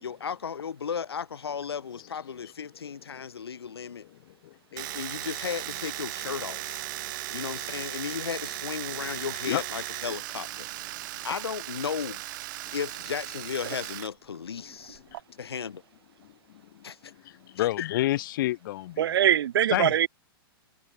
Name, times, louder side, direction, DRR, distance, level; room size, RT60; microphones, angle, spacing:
voice 1, 0.0-4.1 4.7-6.8 7.3-11.0 11.2-12.2 12.7-15.0 15.4-15.8 16.8-17.1 17.6-17.7, left 7 dB, 85° left, 1.9 m, -35 dB
voice 2, 4.4-5.0 7.0-7.4 9.5-9.6 16.7-19.1 19.7-19.9, left 15 dB, 55° left, 0.7 m, -30 dB
Domestic sounds home sounds, 4.8-14.1 14.4-15.2, right 18 dB, 50° right, 0.8 m, -37 dB
voice 3, 19.0-20.1, right 10 dB, 75° right, 0.4 m, -22 dB
hypercardioid pair, 115°, 13 cm